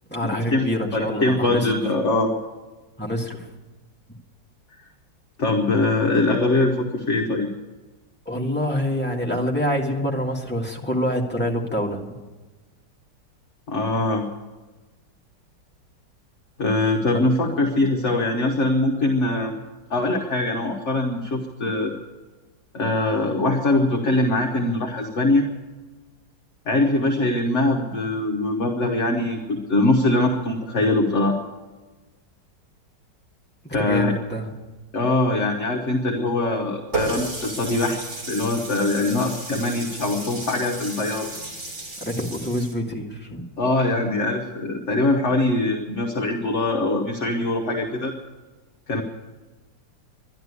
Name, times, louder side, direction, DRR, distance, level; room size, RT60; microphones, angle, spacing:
voice 1, 0.1-1.7 3.0-3.5 8.2-12.0 33.6-34.5 42.0-43.4, equal, 5° left, -1 dB, 1.6 m, -26 dB
voice 2, 0.9-2.3 5.4-7.5 13.7-14.2 16.6-19.5 19.9-21.9 22.7-25.4 26.7-31.4 33.7-34.1 34.9-41.3 43.6-48.1 48.9-49.0, left 2 dB, 45° left, 1 dB, 1.3 m, -22 dB
Water tap faucet, 36.9-42.7, right 3 dB, 85° right, 4.0 m, -33 dB
12.0 x 11.5 x 9.7 m, 1.2 s
omnidirectional pair, 2.0 m